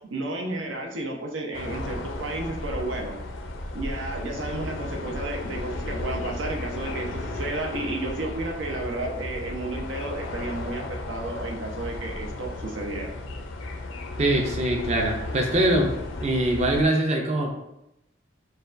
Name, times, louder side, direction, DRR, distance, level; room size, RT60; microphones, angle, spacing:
voice 1, 0.1-3.1 3.7-13.1, right 2 dB, 85° right, 1 dB, 0.7 m, -32 dB
sound 1, 1.5-16.9, left 2 dB, 85° left, 0.5 m, -34 dB
voice 2, 14.2-15.9 16.2-17.5, right 1 dB, 35° right, 1 dB, 0.5 m, -23 dB
6.5 x 2.3 x 2.5 m, 0.88 s
head